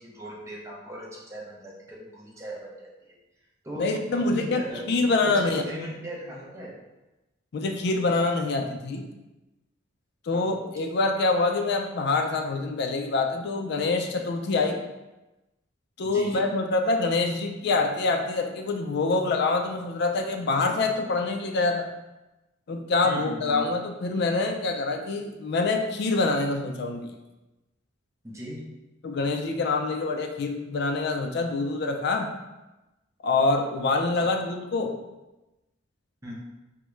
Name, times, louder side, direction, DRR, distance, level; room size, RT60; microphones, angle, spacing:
voice 1, 0.0-3.2 3.6-6.8 10.3-10.5 16.0-16.5 23.0-23.7 28.2-28.7 34.2-34.3 36.2-36.4, equal, 15° right, -3 dB, 0.5 m, -38 dB
voice 2, 3.8-4.6 4.9-5.6 7.5-9.0 10.3-14.8 16.0-21.9 22.7-27.1 29.0-32.3 33.2-34.9, left 3 dB, 55° left, 4 dB, 0.4 m, -25 dB
3.5 x 2.1 x 3.0 m, 1.0 s
head